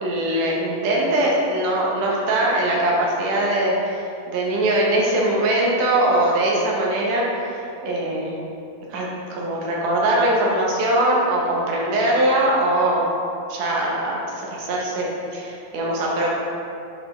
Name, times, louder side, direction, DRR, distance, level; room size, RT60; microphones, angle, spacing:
voice 1, 0.0-8.5 8.9-13.1 13.5-14.2 14.5-16.4, right 1 dB, 70° right, -3 dB, 2.3 m, -21 dB
9.8 x 3.3 x 3.0 m, 2.6 s
omnidirectional pair, 4.0 m